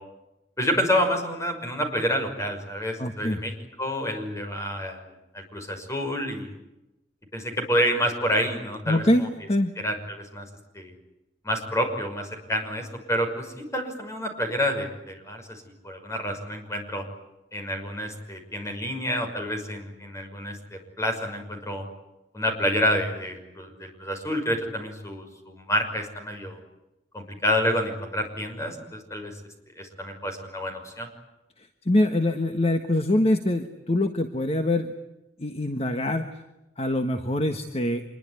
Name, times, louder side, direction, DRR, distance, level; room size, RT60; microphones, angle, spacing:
voice 1, 0.6-3.5 3.8-6.6 7.3-9.3 9.8-10.5 10.7-10.9 11.4-17.0 17.5-21.8 22.3-26.6 27.1-29.4 29.8-31.1, equal, 15° left, 5 dB, 5.9 m, -28 dB
voice 2, 3.0-3.4 8.9-9.7 31.6-34.9 35.4-36.4 36.8-38.0, left 1 dB, 35° left, 7 dB, 1.5 m, -24 dB
26.5 x 22.5 x 9.7 m, 0.94 s
head